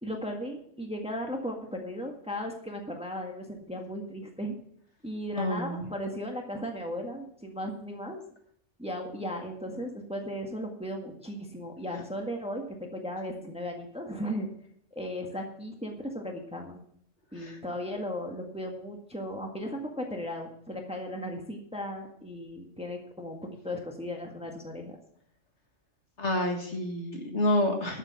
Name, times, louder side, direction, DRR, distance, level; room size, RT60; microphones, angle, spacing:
voice 1, 0.0-4.5 5.0-8.2 8.8-14.5 14.9-16.8 17.3-25.0, equal, 5° right, 2 dB, 1.6 m, -36 dB
voice 2, 5.4-5.9 17.4-17.5 26.2-28.0, left 1 dB, 60° left, 3 dB, 2.1 m, -28 dB
11.5 x 7.4 x 5.9 m, 0.64 s
omnidirectional pair, 1.3 m